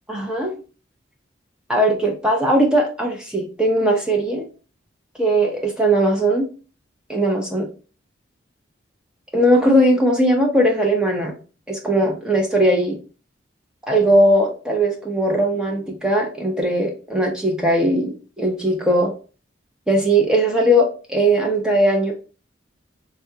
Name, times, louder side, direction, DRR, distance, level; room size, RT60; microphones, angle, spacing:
voice 1, 0.1-0.5 1.7-4.5 5.2-6.5 7.1-7.7 9.3-11.3 11.7-13.0 13.9-19.1 19.9-22.1, right 1 dB, 5° right, -1 dB, 0.6 m, -19 dB
3.6 x 2.3 x 2.8 m, 0.36 s
head